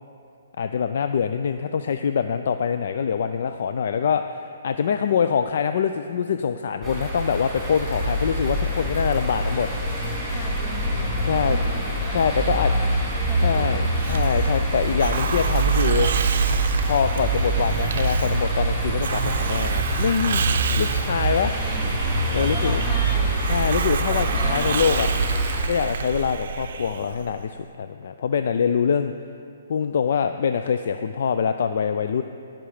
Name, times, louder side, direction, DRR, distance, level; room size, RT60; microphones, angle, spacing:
voice 1, 0.6-9.7 11.2-11.6 12.1-12.7 13.4-16.1 16.4-16.6 16.8-20.5 20.8-21.5 22.3-22.8 23.5-25.1 25.7-29.1 29.7-32.2, left 7 dB, 60° left, 9 dB, 0.4 m, -24 dB
sound 1, 6.8-25.6, right 2 dB, 10° right, 2.9 m, -24 dB
voice 2, 10.3-13.0 13.3-13.9 21.5-22.0 22.4-23.3 24.1-24.7, left 2 dB, 35° left, 0 dB, 2.0 m, -37 dB
Hiss, 13.9-27.4, right 7 dB, 60° right, 0.6 m, -30 dB
17.0 x 6.0 x 4.9 m, 2.5 s
hypercardioid pair, 155°, 0 cm